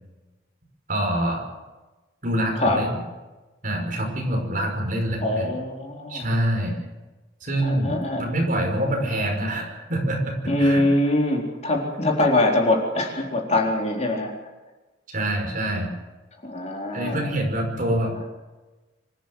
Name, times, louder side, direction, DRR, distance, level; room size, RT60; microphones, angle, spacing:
voice 1, 0.9-1.4 2.2-2.9 3.6-5.5 6.1-6.8 7.4-10.8 15.1-15.9 16.9-18.1, right 1 dB, 45° right, 1 dB, 5.6 m, -25 dB
voice 2, 5.2-6.4 7.6-8.3 10.5-14.4 16.4-17.4, left 1 dB, 35° left, 0 dB, 4.1 m, -23 dB
26.0 x 14.0 x 7.9 m, 1.2 s
head